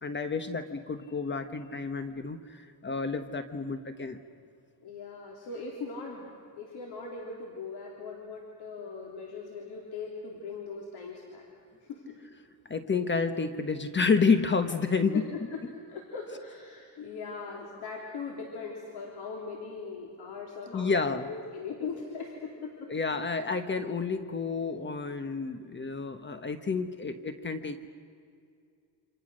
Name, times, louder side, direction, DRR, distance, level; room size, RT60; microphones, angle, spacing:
voice 1, 0.0-4.2 12.7-15.2 20.7-21.3 22.9-27.9, left 4 dB, 30° left, 9 dB, 1.2 m, -30 dB
voice 2, 4.8-6.3 6.6-11.5 11.9-12.2 15.1-15.2 15.5-15.6 15.9-22.9, left 4 dB, 80° left, 0 dB, 3.5 m, -40 dB
29.0 x 26.5 x 6.4 m, 2.3 s
cardioid pair, 125°, 38 cm